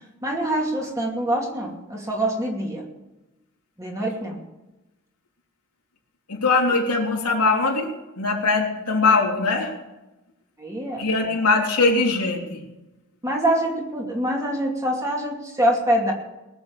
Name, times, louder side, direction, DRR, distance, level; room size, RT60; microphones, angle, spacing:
voice 1, 0.2-2.8 3.8-4.4 10.6-11.3 13.2-16.1, right 1 dB, 15° right, -1 dB, 2.6 m, -25 dB
voice 2, 6.3-7.9 8.2-9.7 11.0-12.6, left 3 dB, 85° left, -1 dB, 3.3 m, -21 dB
20.5 x 7.1 x 6.9 m, 0.99 s
head